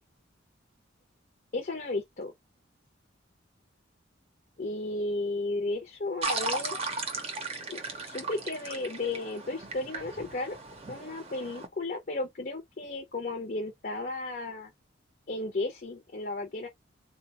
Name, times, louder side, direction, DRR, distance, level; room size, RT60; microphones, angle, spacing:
voice 1, 1.5-2.3 4.6-6.8 7.7-7.8 8.1-10.6 10.9-14.7 15.3-16.7, left 2 dB, 45° left, 0.7 m, -34 dB
sound 1, 6.2-11.7, right 3 dB, 30° right, 0.6 m, -36 dB
3.8 x 2.2 x 2.8 m
head